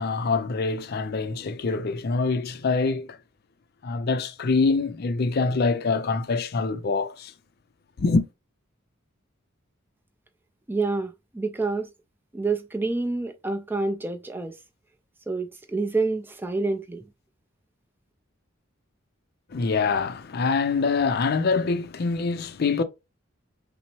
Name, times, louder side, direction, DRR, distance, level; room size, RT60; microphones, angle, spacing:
voice 1, 0.0-3.2 3.8-7.3 8.0-8.3 19.5-22.8, left 4 dB, 50° left, 0.4 m, -25 dB
voice 2, 10.7-11.9 12.3-14.6 15.3-17.0, right 3 dB, 10° right, 0.4 m, -28 dB
5.7 x 2.0 x 3.0 m
head